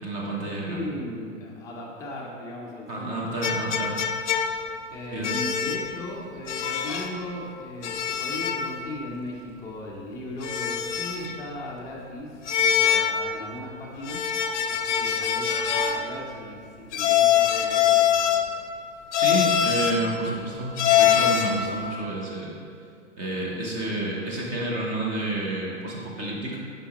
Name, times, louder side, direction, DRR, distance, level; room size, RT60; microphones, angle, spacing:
voice 1, 0.0-0.9 2.9-4.0 5.1-5.3 19.2-22.6 23.2-26.6, right 1 dB, 20° right, -3 dB, 0.9 m, -29 dB
voice 2, 0.7-3.3 4.9-14.3 14.7-18.5, left 1 dB, 10° left, -4 dB, 0.5 m, -37 dB
sound 1, 3.4-4.8 5.2-5.9 6.5-7.2 7.8-8.7 9.0-9.1 10.4-11.4 12.5-13.3 14.0-16.1 16.9-18.6 19.1-20.1 20.8-21.6, left 9 dB, 65° left, 0.6 m, -23 dB
6.7 x 5.0 x 3.0 m, 2.4 s
hypercardioid pair, 135°, 39 cm